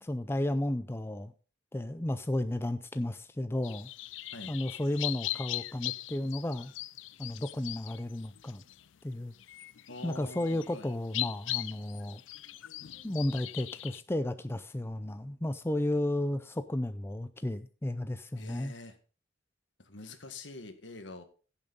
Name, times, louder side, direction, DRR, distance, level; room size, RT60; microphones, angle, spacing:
voice 1, 0.0-1.3 1.7-3.9 4.5-6.7 7.2-8.6 9.0-9.3 10.0-12.2 13.0-18.7, left 1 dB, 15° left, 11 dB, 0.5 m, -33 dB
sound 1, 3.6-14.0, left 16 dB, 90° left, 0.5 m, -40 dB
voice 2, 9.9-10.9 18.4-18.9 19.8-21.2, left 2 dB, 75° left, 8 dB, 1.7 m, -45 dB
15.5 x 7.2 x 4.0 m, 0.37 s
head